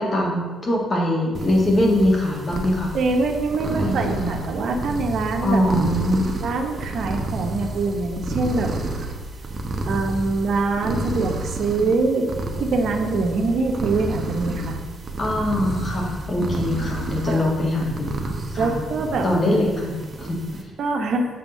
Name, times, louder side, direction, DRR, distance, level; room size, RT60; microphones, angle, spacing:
voice 1, 0.0-2.9 3.8-4.4 5.4-6.3 11.8-11.9 15.2-18.8 19.2-20.6, left 1 dB, 35° left, -1 dB, 1.9 m, -22 dB
sound 1, 1.3-20.6, right 2 dB, 40° right, 1.0 m, -30 dB
voice 2, 2.9-5.6 6.4-8.7 9.8-12.3 12.6-14.7 17.3-17.5 18.6-19.2 20.8-21.3, right 3 dB, 65° right, 3 dB, 1.0 m, -24 dB
7.3 x 3.5 x 6.4 m, 1.5 s
cardioid pair, 90°, 0 cm